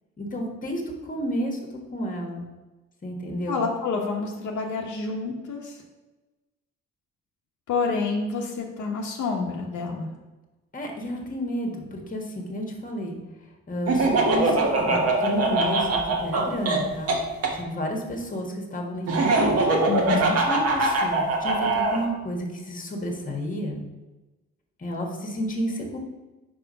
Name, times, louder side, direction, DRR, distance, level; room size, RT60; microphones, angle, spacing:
voice 1, 0.2-1.6 1.9-2.5 3.0-3.6 10.7-13.2 13.7-17.1 17.5-19.1 19.8-20.2 20.5-23.8 24.8-26.0, equal, 25° left, 2 dB, 1.5 m, -31 dB
voice 2, 3.5-5.8 7.7-10.1 19.9-20.4, left 4 dB, 75° left, 0 dB, 1.1 m, -28 dB
Laughter, 13.9-17.5 19.1-22.0, right 2 dB, 55° right, 1.2 m, -22 dB
4.8 x 4.6 x 5.4 m, 1.1 s
cardioid pair, 90°, 30 cm